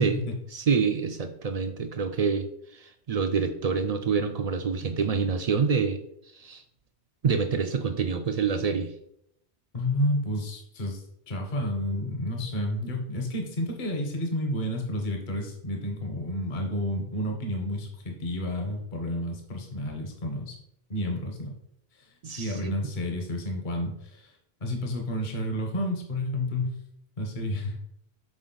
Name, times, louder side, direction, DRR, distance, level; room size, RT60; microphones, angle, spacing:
voice 1, 0.0-0.3 9.7-20.6 20.9-21.5 22.0-22.1 22.4-24.3 24.6-26.8 27.2-27.8, left 1 dB, 50° left, 1 dB, 1.1 m, -30 dB
voice 2, 0.5-6.0 6.3-6.6 7.2-8.9 22.2-22.7, right 5 dB, 55° right, 7 dB, 0.4 m, -27 dB
6.2 x 4.3 x 3.9 m, 0.75 s
omnidirectional pair, 1.1 m